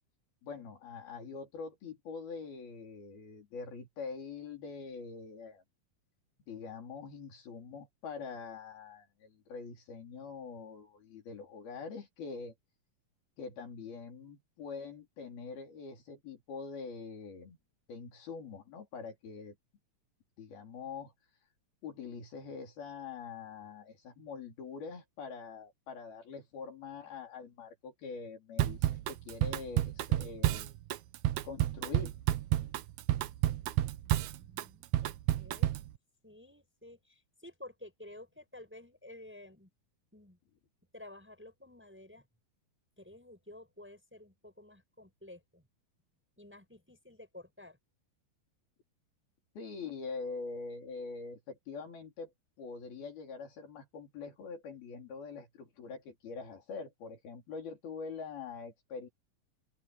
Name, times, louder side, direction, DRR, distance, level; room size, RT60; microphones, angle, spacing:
voice 1, 0.4-5.6 6.5-12.5 13.4-17.6 17.9-19.6 20.4-21.1 21.8-30.7 31.4-32.1 49.6-59.1, left 5 dB, 75° left, 6.1 m, -44 dB
Drum kit / Drum, 28.6-35.9, right 15 dB, 90° right, 1.6 m, -30 dB
voice 2, 34.0-35.8 36.2-39.7 40.1-40.4 40.9-42.3 43.0-45.6 46.4-47.8, left 1 dB, 5° right, 4.7 m, -52 dB
open air
omnidirectional pair, 4.4 m